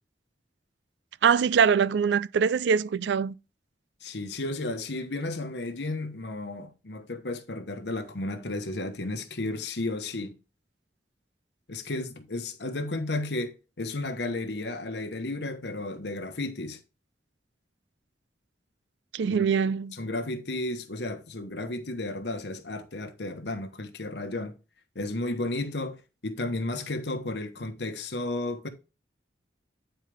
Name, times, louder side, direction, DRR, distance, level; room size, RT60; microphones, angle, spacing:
voice 1, 1.2-3.3 19.1-19.9, right 6 dB, 85° right, 0.4 m, -23 dB
voice 2, 4.0-10.4 11.7-16.8 19.2-19.4 19.9-24.5 24.9-28.7, left 2 dB, 75° left, 1.2 m, -33 dB
9.1 x 4.6 x 3.4 m
head